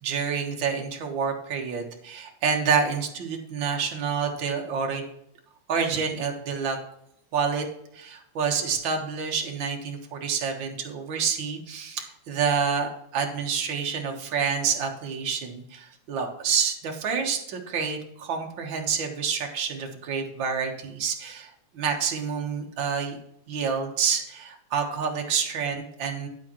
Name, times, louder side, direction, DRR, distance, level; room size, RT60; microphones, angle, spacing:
voice 1, 0.0-5.0 5.7-6.8 7.3-7.6 7.9-23.2 23.5-26.3, right 6 dB, 50° right, 2 dB, 1.5 m, -28 dB
9.3 x 8.8 x 3.0 m, 0.74 s
omnidirectional pair, 3.7 m